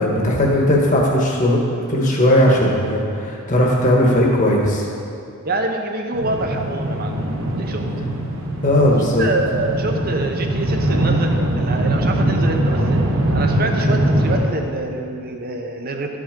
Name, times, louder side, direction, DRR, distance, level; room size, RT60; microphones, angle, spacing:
voice 1, 0.0-1.6 1.9-4.8 8.6-9.3 13.9-14.0, left 1 dB, 35° left, -2 dB, 1.4 m, -17 dB
voice 2, 5.4-7.2 7.6-7.9 9.2-13.0 13.3-16.2, right 2 dB, 45° right, 3 dB, 0.9 m, -26 dB
sound 1, 6.1-14.4, right 1 dB, 70° right, 1.3 m, -21 dB
12.5 x 6.2 x 5.2 m, 2.6 s
head